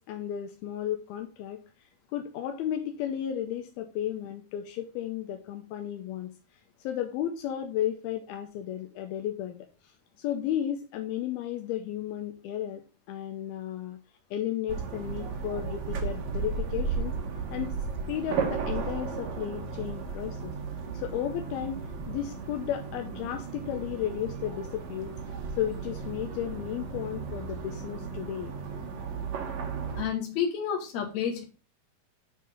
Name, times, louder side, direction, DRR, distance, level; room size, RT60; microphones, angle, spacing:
voice 1, 0.1-1.6 2.1-6.3 6.8-9.9 10.2-12.8 13.1-14.0 14.3-17.1 17.5-17.7 18.1-20.5 20.9-21.8 22.1-25.2 25.5-28.5, left 11 dB, 80° left, 5 dB, 2.6 m, -33 dB
sound 1, 14.7-30.0, right 5 dB, 65° right, 1.8 m, -35 dB
voice 2, 29.9-31.4, left 8 dB, 55° left, 1 dB, 2.7 m, -30 dB
9.5 x 4.0 x 5.3 m, 0.33 s
omnidirectional pair, 4.5 m